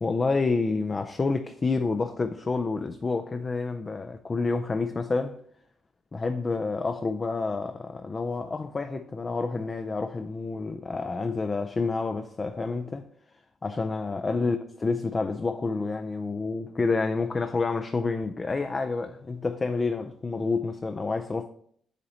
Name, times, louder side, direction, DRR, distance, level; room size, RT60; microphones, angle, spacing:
voice 1, 0.0-5.4 6.1-13.0 13.6-21.5, left 3 dB, 30° left, 0.4 m, -28 dB
7.9 x 2.9 x 4.0 m
cardioid pair, 90°, 0 cm